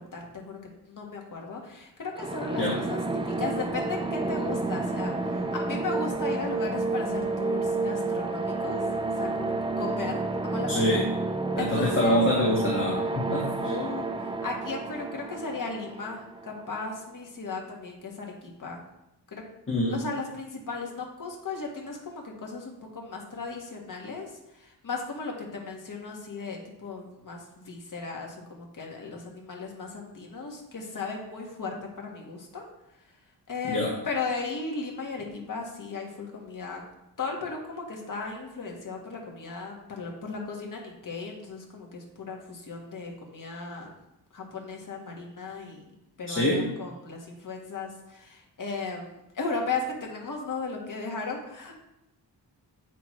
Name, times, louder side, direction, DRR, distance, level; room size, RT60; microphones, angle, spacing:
voice 1, 0.0-2.6 2.9-8.8 9.2-11.0 11.6-12.2 13.6-18.8 19.3-19.4 19.9-32.6 33.5-36.8 37.2-43.9 44.3-51.7, left 4 dB, 50° left, 0 dB, 1.6 m, -36 dB
sound 1, 2.2-16.9, right 3 dB, 15° right, 0.5 m, -30 dB
voice 2, 10.7-11.0 11.5-13.8 19.7-20.0 33.7-33.9 46.3-46.6, left 1 dB, 30° left, -5 dB, 1.7 m, -25 dB
8.2 x 6.0 x 3.2 m, 0.86 s
wide cardioid pair, 100°, 40 cm